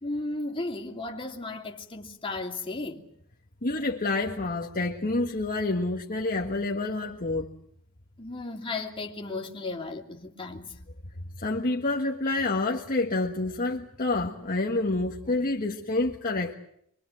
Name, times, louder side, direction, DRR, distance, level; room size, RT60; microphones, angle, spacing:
voice 1, 0.0-3.0 8.2-10.7, left 2 dB, 25° left, 2.7 m, -35 dB
voice 2, 3.6-7.5 11.4-16.5, left 2 dB, 40° left, 1.6 m, -28 dB
25.5 x 23.0 x 7.7 m
head